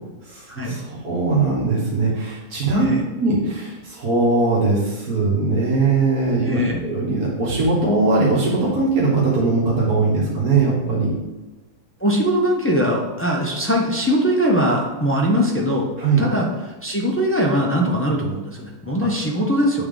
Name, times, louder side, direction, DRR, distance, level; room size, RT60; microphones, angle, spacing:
voice 1, 0.2-2.9 3.2-11.1 16.0-16.2, right 3 dB, 80° right, -6 dB, 1.7 m, -20 dB
voice 2, 6.4-6.8 12.0-15.9 16.2-19.8, equal, 20° left, -2 dB, 0.3 m, -21 dB
7.6 x 3.5 x 3.7 m, 1.1 s
omnidirectional pair, 1.6 m